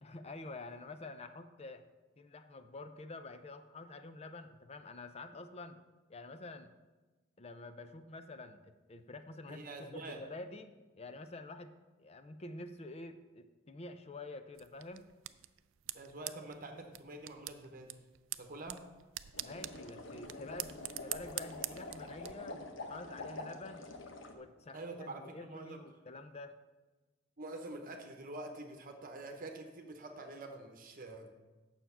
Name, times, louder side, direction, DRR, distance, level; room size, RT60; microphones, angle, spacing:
voice 1, 0.0-1.9 2.2-5.8 6.1-6.7 7.4-15.1 19.4-23.9 24.3-26.6, left 2 dB, 30° left, 9 dB, 0.6 m, -48 dB
voice 2, 9.5-10.2 15.9-17.9 18.4-18.8 24.7-25.8 27.4-31.3, right 2 dB, 45° right, 4 dB, 1.0 m, -46 dB
sound 1, 14.5-22.3, right 15 dB, 80° right, 0.4 m, -45 dB
sound 2, 19.3-24.3, left 2 dB, 70° left, 1.0 m, -46 dB
9.3 x 7.3 x 5.6 m, 1.2 s
head